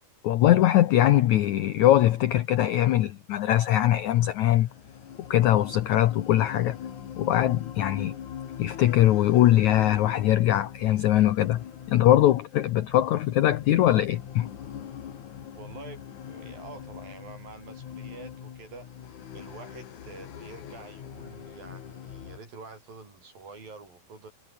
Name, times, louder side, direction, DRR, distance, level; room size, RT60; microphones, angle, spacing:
voice 1, 0.2-4.7 5.2-6.8 7.2-8.1 8.6-14.5, left 13 dB, 80° left, 1.7 m, -21 dB
sound 1, 3.7-22.4, left 9 dB, 55° left, 3.2 m, -42 dB
voice 2, 15.5-18.9 19.3-24.3, right 4 dB, 60° right, 9.2 m, -46 dB
omnidirectional pair, 4.7 m